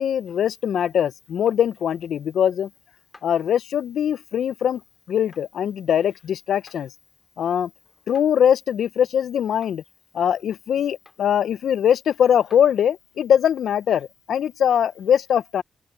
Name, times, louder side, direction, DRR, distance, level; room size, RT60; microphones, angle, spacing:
voice 1, 0.0-2.7 3.2-4.8 5.1-6.9 7.4-7.7 8.1-9.8 10.1-15.6, left 9 dB, 80° left, 0.5 m, -21 dB
sound 1, 1.5-1.6 3.1-3.3 5.3-5.5 6.7-6.8 8.1-8.3 9.6-9.8 11.0-11.3 12.5-12.7, left 3 dB, 20° left, 4.9 m, -51 dB
open air
wide cardioid pair, 135°, 0 cm